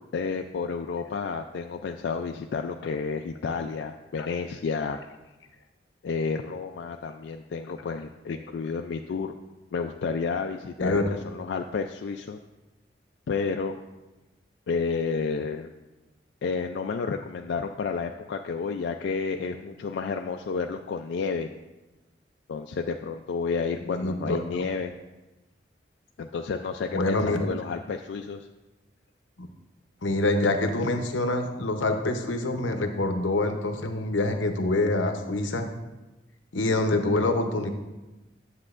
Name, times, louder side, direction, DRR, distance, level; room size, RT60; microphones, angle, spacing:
voice 1, 0.0-5.0 6.0-9.3 9.7-12.4 13.3-13.8 14.7-15.7 16.4-21.5 22.5-24.9 26.2-28.5, left 5 dB, 70° left, 5 dB, 0.3 m, -31 dB
voice 2, 23.8-24.4 26.9-27.5 29.4-29.5 30.0-35.7 36.5-37.7, left 2 dB, 90° left, 6 dB, 0.8 m, -26 dB
9.8 x 7.2 x 2.5 m, 1.1 s
head